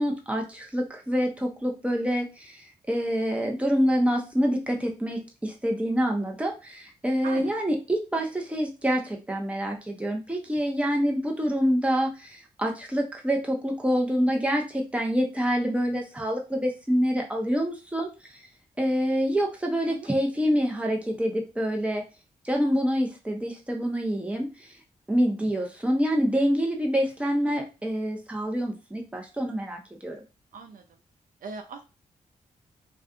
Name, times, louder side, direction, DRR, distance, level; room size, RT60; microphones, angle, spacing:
voice 1, 0.0-2.6 2.9-18.1 18.8-22.0 22.4-24.7 25.1-30.2, equal, 10° right, 1 dB, 0.8 m, -26 dB
voice 2, 7.2-7.5 19.9-20.1 30.5-30.8 31.4-31.8, right 4 dB, 70° right, 5 dB, 0.4 m, -39 dB
2.5 x 2.4 x 2.4 m, 0.30 s
supercardioid pair, 45°, 15 cm